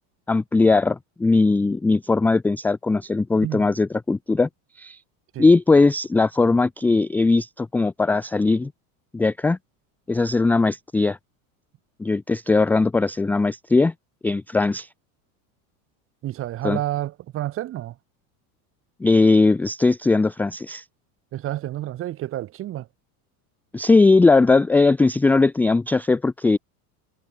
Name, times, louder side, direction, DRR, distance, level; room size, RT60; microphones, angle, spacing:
voice 1, 0.3-4.5 4.8-5.0 5.4-8.7 9.1-9.6 10.1-11.2 12.0-13.9 14.2-14.9 16.6-16.8 19.0-20.8 23.7-26.6, left 3 dB, 5° left, 0.5 m, -19 dB
voice 2, 3.4-3.7 5.3-5.5 16.2-17.9 21.3-22.9, right 14 dB, 30° right, 1.6 m, -29 dB
supercardioid pair, 165°, 45 cm